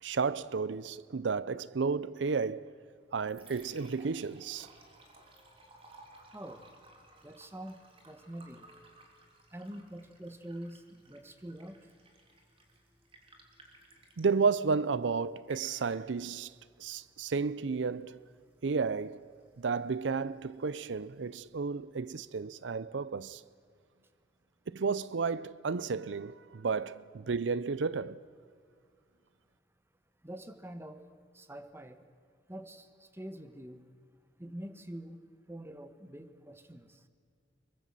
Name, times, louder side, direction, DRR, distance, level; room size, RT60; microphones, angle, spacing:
voice 1, 0.0-2.7 3.1-4.7 14.2-16.5 16.8-18.2 18.6-19.3 19.6-23.4 24.7-28.2, right 5 dB, 80° right, 0.5 m, -32 dB
Liquid, 2.9-22.0, right 2 dB, 30° right, 3.3 m, -60 dB
voice 2, 6.3-6.7 7.2-7.8 8.0-8.7 9.5-11.8 30.2-31.0 31.3-32.0 32.5-33.8 34.4-35.2 35.5-37.0, right 1 dB, 15° right, 1.3 m, -45 dB
25.0 x 23.0 x 7.6 m
head